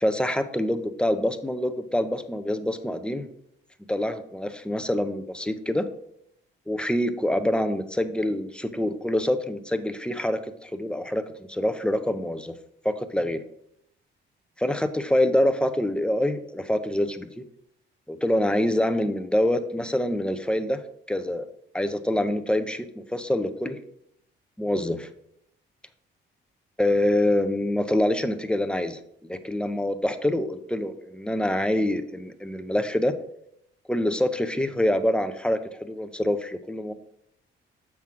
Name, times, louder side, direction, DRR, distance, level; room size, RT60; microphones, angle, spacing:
voice 1, 0.0-3.3 3.9-5.9 6.7-11.2 11.5-12.5 12.8-13.4 14.6-17.4 18.1-20.8 21.1-21.4 21.7-23.8 24.6-25.1 26.8-33.1 33.9-36.9, left 1 dB, 5° left, 9 dB, 0.6 m, -25 dB
7.2 x 6.0 x 3.6 m, 0.74 s
cardioid pair, 90°, 20 cm